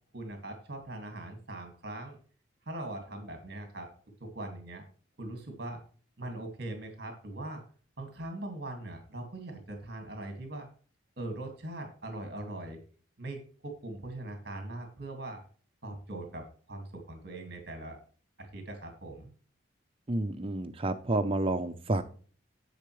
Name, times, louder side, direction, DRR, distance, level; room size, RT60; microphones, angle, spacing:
voice 1, 0.1-2.2 2.7-3.9 4.3-4.8 5.2-5.8 6.2-7.6 8.0-10.7 11.2-12.8 13.2-15.4 15.8-18.0 18.4-19.3, right 1 dB, 55° right, 4 dB, 2.1 m, -41 dB
voice 2, 20.1-22.0, right 2 dB, 30° right, 8 dB, 0.6 m, -30 dB
10.5 x 7.7 x 3.2 m, 0.42 s
head